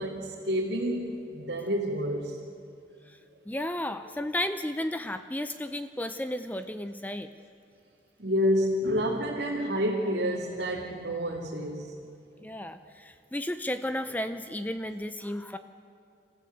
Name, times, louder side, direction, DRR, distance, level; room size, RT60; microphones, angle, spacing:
voice 1, 0.0-2.5 8.2-11.9, equal, 70° right, -3 dB, 2.2 m, -29 dB
voice 2, 3.5-7.3 12.4-15.6, left 1 dB, 10° left, 10 dB, 0.5 m, -33 dB
27.5 x 14.5 x 7.9 m, 2.5 s
head